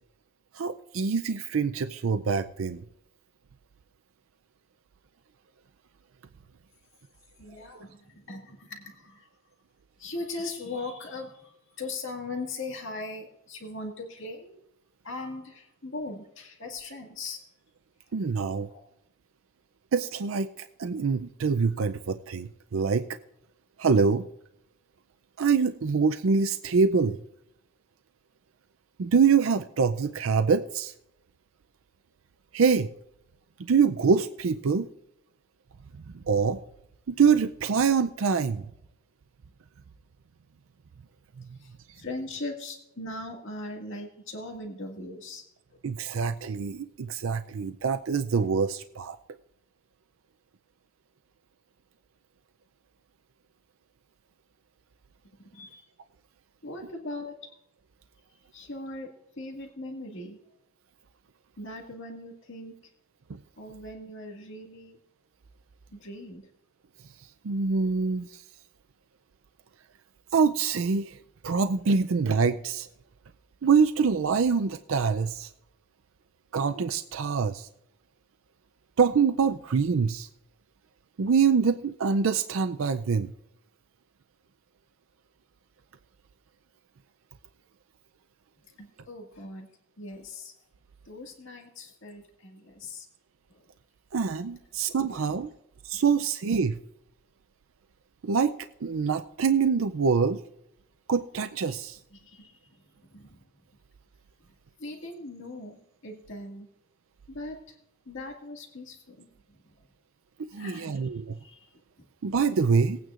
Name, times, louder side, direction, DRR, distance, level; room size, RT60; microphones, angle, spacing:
voice 1, 0.5-2.8 18.1-18.7 19.9-23.2 23.8-24.3 25.4-27.2 29.0-30.9 32.5-32.9 33.6-34.9 36.1-36.6 37.1-38.7 41.4-41.6 41.9-42.0 45.8-49.2 63.3-63.4 67.2-68.4 70.3-71.2 71.4-72.9 73.6-75.5 76.5-77.7 79.0-80.3 81.2-83.3 94.1-95.5 95.8-96.8 98.2-98.5 98.8-100.4 101.1-102.0 110.5-111.4 112.2-113.0, right 5 dB, 85° right, 10 dB, 0.5 m, -25 dB
voice 2, 7.4-9.3 10.0-14.6 15.0-17.4 18.0-18.1 18.6-18.8 41.6-45.4 55.4-55.9 56.6-57.6 58.5-59.1 59.4-60.4 61.6-62.7 63.6-65.0 65.9-66.5 88.8-89.7 90.0-90.5 91.0-93.1 93.5-93.7 95.9-96.0 102.1-103.4 104.8-106.7 107.3-107.8 108.1-109.9 110.5-111.7, left 2 dB, 65° left, 1 dB, 2.0 m, -40 dB
19.5 x 9.2 x 2.5 m, 0.78 s
head